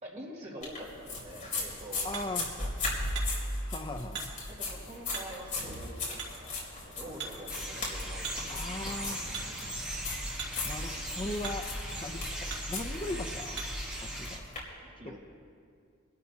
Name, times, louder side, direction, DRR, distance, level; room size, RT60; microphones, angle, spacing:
voice 1, 0.0-2.7 4.5-9.3 9.6-9.7 15.0-15.2, right 1 dB, 35° right, -4 dB, 2.3 m, -46 dB
sound 1, 0.6-14.6, left 2 dB, 40° left, 3.8 m, -38 dB
Hammer, 1.3-13.9, right 5 dB, 55° right, 2.5 m, -46 dB
voice 2, 2.0-2.5 3.6-4.3 8.5-9.3 10.6-11.7 12.0-13.6 14.0-14.4 15.0-15.2, left 2 dB, 25° left, 6 dB, 0.5 m, -38 dB
sound 2, 7.5-14.4, equal, 5° right, 1.4 m, -38 dB
25.0 x 12.5 x 2.8 m, 2.2 s
head